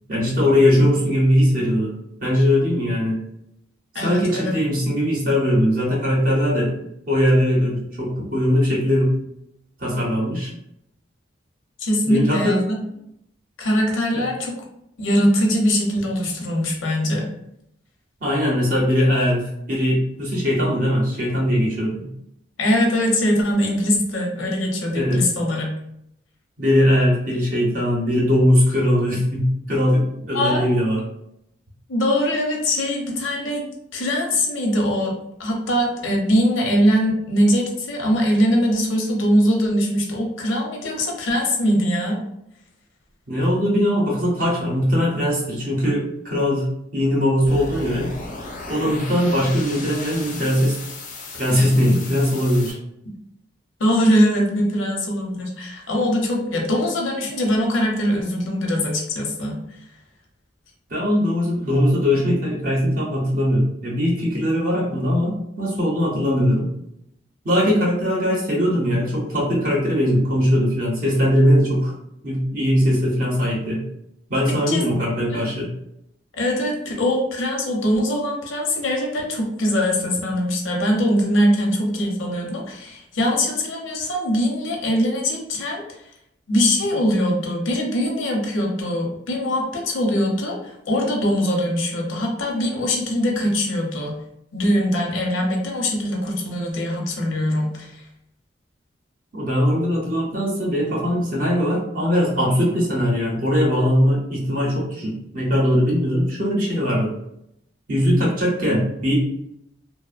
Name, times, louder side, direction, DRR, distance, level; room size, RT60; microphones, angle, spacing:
voice 1, 0.1-1.9 2.2-3.2 4.0-6.7 7.1-9.1 9.8-10.5 12.1-12.6 14.1-14.2 18.2-22.1 24.9-25.2 26.6-31.0 43.3-48.1 48.7-50.8 51.3-52.8 60.9-66.7 67.4-71.9 72.2-73.8 74.3-75.7 99.3-107.1 107.9-109.1, equal, 45° right, -3 dB, 0.6 m, -20 dB
voice 2, 3.9-4.6 11.8-12.8 13.6-14.6 15.0-17.3 22.6-25.7 30.3-30.6 31.9-33.7 33.9-35.1 35.4-42.2 53.8-59.6 74.7-74.8 75.3-75.5 76.3-85.8 86.5-94.2 94.5-97.9, equal, 90° left, 0 dB, 0.7 m, -22 dB
sound 1, 47.5-52.7, left 3 dB, 40° left, 0.4 m, -35 dB
2.8 x 2.0 x 2.4 m, 0.78 s
head